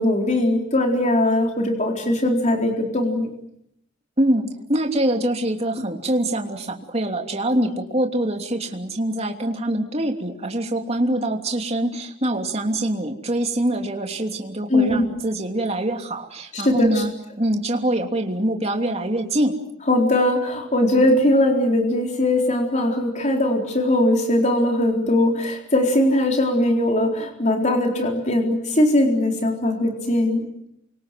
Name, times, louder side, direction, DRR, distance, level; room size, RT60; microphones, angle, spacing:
voice 1, 0.0-3.3 14.7-15.1 16.5-17.0 19.9-30.4, left 1 dB, 35° left, 2 dB, 4.0 m, -20 dB
voice 2, 4.2-17.1 17.4-19.5, right 1 dB, 30° right, 3 dB, 3.0 m, -24 dB
29.0 x 24.5 x 7.7 m, 0.75 s
head